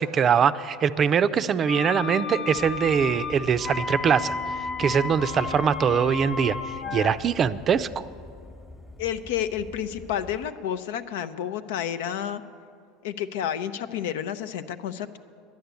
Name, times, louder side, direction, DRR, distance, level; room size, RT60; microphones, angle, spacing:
voice 1, 0.0-8.1, right 7 dB, 35° right, 14 dB, 0.5 m, -23 dB
sound 1, 1.6-7.2, left 5 dB, 35° left, 0.8 m, -32 dB
sound 2, 2.5-10.5, left 1 dB, 10° left, 1.0 m, -46 dB
voice 2, 9.0-12.4 13.0-15.2, left 9 dB, 80° left, 11 dB, 0.6 m, -30 dB
10.5 x 10.0 x 8.2 m, 2.3 s
supercardioid pair, 100°, 0 cm